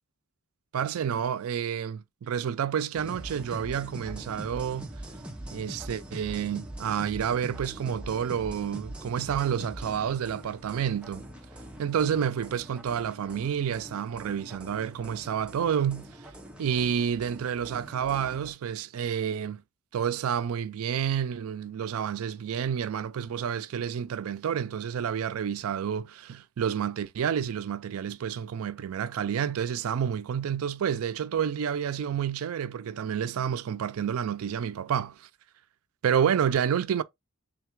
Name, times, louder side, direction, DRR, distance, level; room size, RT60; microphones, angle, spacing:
voice 1, 0.7-4.9 5.5-11.3 11.8-16.1 16.6-19.6 19.9-35.3 36.0-37.0, right 8 dB, 75° right, 0.4 m, -29 dB
sound 1, 2.9-18.5, right 1 dB, 5° right, 0.6 m, -43 dB
3.7 x 2.3 x 4.5 m
head